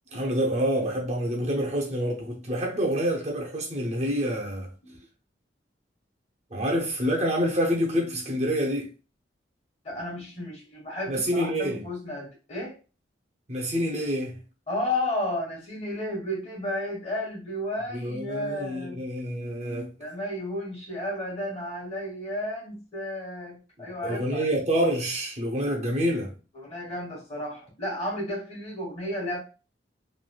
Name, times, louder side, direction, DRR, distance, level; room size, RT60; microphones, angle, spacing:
voice 1, 0.1-4.7 6.5-8.9 11.1-11.8 13.5-14.4 17.9-19.9 23.8-26.3, equal, 40° right, 0.7 m, -27 dB
voice 2, 9.8-12.8 14.7-19.0 20.0-24.4 26.5-29.4, left 1 dB, 35° left, 1.4 m, -33 dB
3.2 x 2.5 x 2.3 m
head